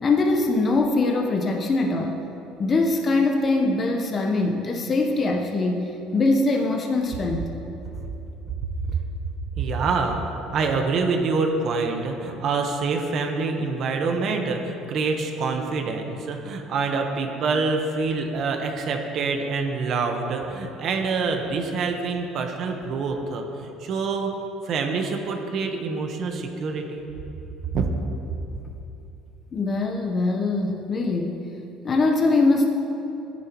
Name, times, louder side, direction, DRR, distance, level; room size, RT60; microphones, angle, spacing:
voice 1, 0.0-2.2 2.6-7.5 29.5-31.4 31.8-32.7, left 3 dB, 35° left, 1 dB, 1.0 m, -22 dB
voice 2, 9.6-10.2 10.5-24.3 24.6-27.0 27.7-27.9, right 4 dB, 55° right, 3 dB, 1.2 m, -26 dB
13.5 x 10.5 x 3.1 m, 2.9 s
supercardioid pair, 100°, 0 cm